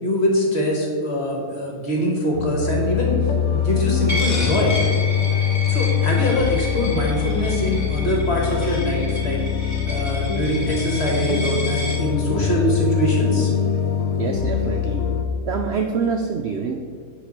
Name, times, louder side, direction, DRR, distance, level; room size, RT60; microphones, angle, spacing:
voice 1, 0.0-3.2 3.5-4.8 5.7-9.4 9.8-13.5, equal, 45° left, -2 dB, 1.8 m, -23 dB
sound 1, 2.3-15.2, left 8 dB, 65° left, 0.9 m, -23 dB
Coin (dropping), 4.1-12.0, equal, 10° left, 1.2 m, -31 dB
voice 2, 14.2-15.1 15.5-16.7, right 5 dB, 65° right, 3 dB, 0.6 m, -25 dB
8.4 x 3.3 x 6.6 m, 2.1 s
omnidirectional pair, 1.6 m